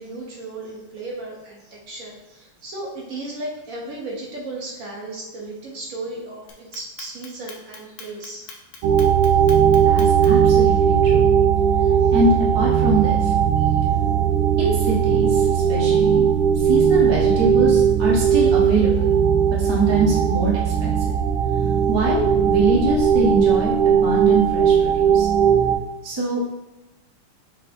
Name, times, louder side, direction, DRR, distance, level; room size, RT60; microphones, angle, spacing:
voice 1, 0.0-8.5 10.7-10.8 12.0-12.1, right 2 dB, 50° right, -2 dB, 1.1 m, -35 dB
Clock, 6.5-10.5, left 5 dB, 65° left, 1.3 m, -41 dB
sound 1, 8.8-25.8, right 8 dB, 85° right, 1.5 m, -18 dB
voice 2, 9.8-11.3 12.1-13.3 14.6-16.2 16.5-19.1 19.6-20.9 21.9-25.3 26.0-26.5, right 1 dB, 30° right, -5 dB, 0.5 m, -23 dB
5.6 x 2.0 x 4.2 m, 0.98 s
omnidirectional pair, 2.3 m